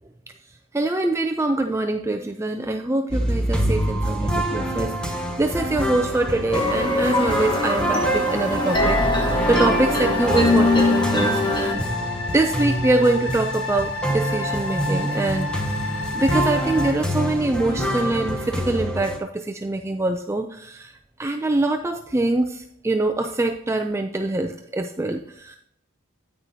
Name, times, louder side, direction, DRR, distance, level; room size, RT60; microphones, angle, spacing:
voice 1, 0.7-11.8 12.3-15.5 16.1-20.9 21.2-25.6, right 2 dB, 15° right, 5 dB, 0.3 m, -24 dB
sound 1, 3.1-19.2, right 1 dB, 5° left, 0.9 m, -26 dB
sound 2, 6.5-11.7, left 2 dB, 20° left, 1.3 m, -22 dB
sound 3, 8.6-16.9, left 3 dB, 80° left, 1.6 m, -31 dB
9.7 x 9.0 x 2.7 m, 0.71 s
head